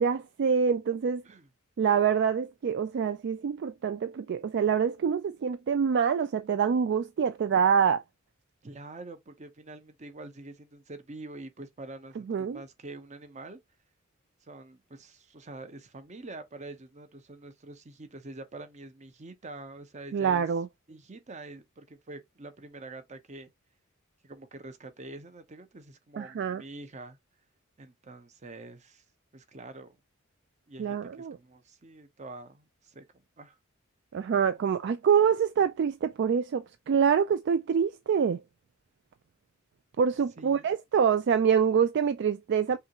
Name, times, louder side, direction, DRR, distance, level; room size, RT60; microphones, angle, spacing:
voice 1, 0.0-1.2 1.8-8.0 12.3-12.6 20.1-20.7 26.2-26.6 30.8-31.4 34.1-38.4 40.0-42.8, right 7 dB, 55° right, 0.3 m, -26 dB
voice 2, 8.6-13.6 14.4-20.5 20.9-23.5 24.2-27.2 27.8-29.0 29.3-30.0 30.7-33.0 33.4-33.6 40.4-40.7, right 2 dB, 35° right, 0.8 m, -45 dB
5.5 x 2.4 x 2.9 m
head